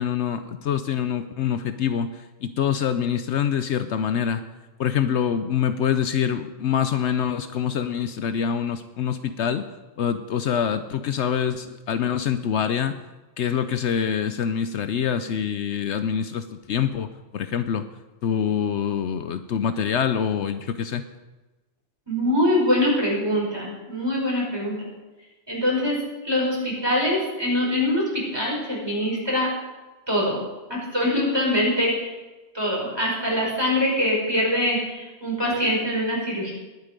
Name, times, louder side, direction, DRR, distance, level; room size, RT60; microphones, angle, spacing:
voice 1, 0.0-4.4 4.8-9.7 10.0-13.0 13.4-17.9 18.2-21.1, left 8 dB, 70° left, 10 dB, 0.9 m, -25 dB
voice 2, 22.1-24.8 25.5-29.5 30.1-30.4 30.7-32.1 32.5-36.5, left 1 dB, 20° right, -4 dB, 5.3 m, -23 dB
20.5 x 8.2 x 5.2 m, 1.1 s
omnidirectional pair, 1.3 m